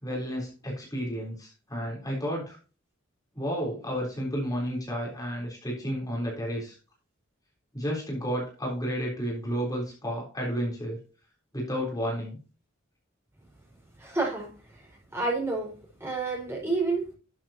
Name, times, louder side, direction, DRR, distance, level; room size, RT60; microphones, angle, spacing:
voice 1, 0.0-2.6 3.3-6.8 7.7-11.0 11.5-12.4, equal, 20° left, -3 dB, 3.8 m, -32 dB
voice 2, 14.0-14.5 15.1-15.7 16.0-17.0, right 3 dB, 15° right, -2 dB, 4.8 m, -28 dB
12.5 x 7.6 x 2.9 m, 0.35 s
head